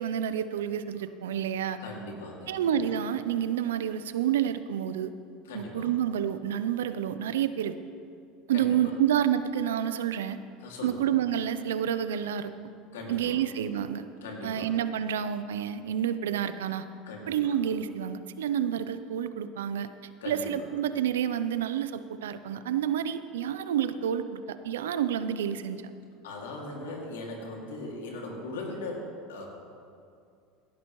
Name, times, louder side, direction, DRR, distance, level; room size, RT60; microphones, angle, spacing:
voice 1, 0.0-1.8 2.5-5.1 5.5-7.8 8.5-10.4 10.8-12.5 13.1-14.1 14.4-16.9 17.3-19.9 20.3-25.9, right 9 dB, 90° right, 12 dB, 0.5 m, -29 dB
voice 2, 1.8-2.8 5.5-5.9 8.5-8.9 10.6-11.0 12.9-13.4 14.2-14.7 17.1-17.5 20.2-20.5 26.2-29.5, left 2 dB, 90° left, -1 dB, 2.3 m, -39 dB
16.5 x 11.0 x 3.1 m, 2.4 s
hypercardioid pair, 90°, 0 cm